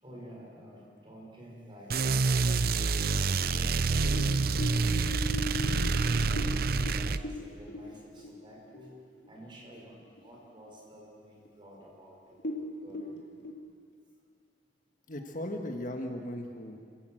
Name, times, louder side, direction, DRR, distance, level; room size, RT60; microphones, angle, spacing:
voice 1, 0.0-2.7 3.0-8.9 9.3-12.4 12.8-13.2 15.2-15.3, equal, 25° right, -2 dB, 5.6 m, -50 dB
sound 1, 1.9-7.2, right 4 dB, 55° right, 0.6 m, -27 dB
sound 2, 3.3-8.9 9.2-9.3 9.7-10.3 10.7-10.8 11.5-11.6 11.8-12.0 12.3-13.5, left 1 dB, 70° left, 3.1 m, -39 dB
voice 2, 15.1-16.8, left 1 dB, 45° left, 4 dB, 1.6 m, -37 dB
26.5 x 16.5 x 7.9 m, 2.2 s
head